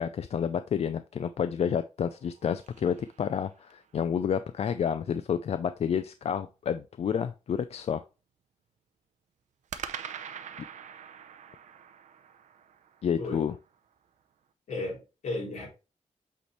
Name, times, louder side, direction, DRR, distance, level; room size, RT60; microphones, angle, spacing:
voice 1, 0.0-8.0 13.0-13.5, left 8 dB, 60° left, 0.4 m, -30 dB
sound 1, 2.0-3.9 9.7-14.0, right 8 dB, 85° right, 0.7 m, -44 dB
voice 2, 14.7-15.7, left 2 dB, 75° left, 3.6 m, -34 dB
8.3 x 4.3 x 3.1 m
wide cardioid pair, 125°, 12 cm